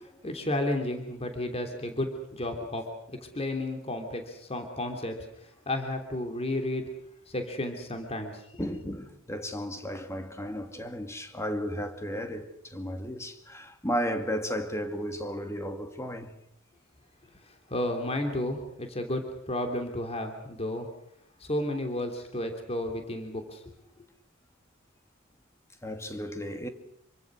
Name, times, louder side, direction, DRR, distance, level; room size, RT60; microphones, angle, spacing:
voice 1, 0.0-2.9 3.2-6.9 7.3-8.6 17.5-20.9 21.4-23.6, left 1 dB, 30° left, 3.2 m, -32 dB
voice 2, 8.6-16.3 25.8-26.7, equal, 15° left, 2.3 m, -34 dB
27.0 x 24.5 x 6.4 m
head